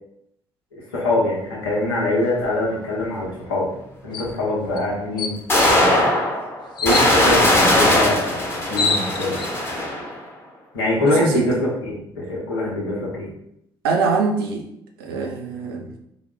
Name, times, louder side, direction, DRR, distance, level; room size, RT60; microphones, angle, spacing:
voice 1, 0.7-3.7 4.0-6.1 6.8-9.4 10.7-13.3, left 1 dB, 75° left, -4 dB, 1.0 m, -24 dB
sound 1, 2.8-2.9 4.7-4.8 5.5-10.2, left 1 dB, 20° left, 0.9 m, -19 dB
sound 2, 4.1-4.3 4.8-4.9 5.2-5.7 6.8-7.1 8.2-8.3 8.5-9.5, left 4 dB, 40° left, 0.5 m, -25 dB
voice 2, 11.0-11.5 13.8-14.6 15.0-15.9, right 4 dB, 70° right, 2 dB, 0.5 m, -23 dB
3.9 x 2.1 x 3.7 m, 0.77 s
figure-of-eight pair, 50°, 12 cm